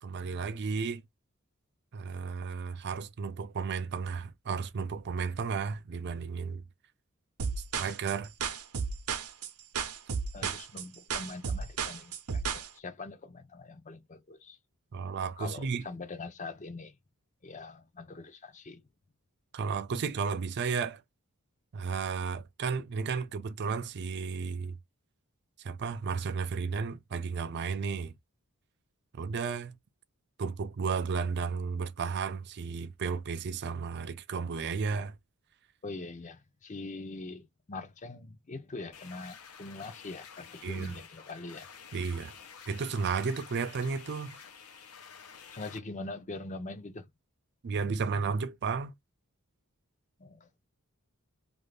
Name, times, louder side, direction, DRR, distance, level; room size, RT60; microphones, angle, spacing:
voice 1, 0.0-1.0 1.9-6.6 7.7-8.3 10.4-10.5 14.9-15.8 19.5-21.0 21.7-24.8 25.6-28.1 29.1-29.8 30.4-35.1 40.6-40.9 41.9-42.3 42.7-44.4 47.6-48.9, right 5 dB, 50° right, 0.4 m, -33 dB
sound 1, 7.4-12.7, right 6 dB, 80° right, 0.7 m, -33 dB
voice 2, 10.3-14.6 15.4-17.0 17.4-18.8 35.8-41.7 45.5-47.1 50.2-50.5, left 3 dB, 35° left, 0.6 m, -43 dB
sound 2, 38.9-45.8, left 6 dB, 75° left, 0.8 m, -50 dB
2.6 x 2.4 x 3.3 m
head